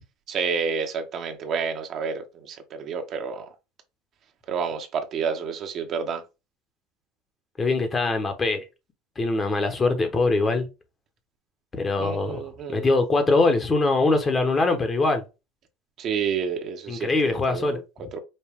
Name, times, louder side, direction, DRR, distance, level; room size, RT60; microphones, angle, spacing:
voice 1, 0.3-3.5 4.5-6.2 12.0-12.9 16.0-18.2, right 6 dB, 50° right, 1.0 m, -30 dB
voice 2, 7.6-8.6 9.2-10.7 11.7-12.4 12.7-15.2 16.9-17.8, left 3 dB, 25° left, 1.1 m, -22 dB
5.3 x 2.2 x 3.5 m
supercardioid pair, 105°, 0 cm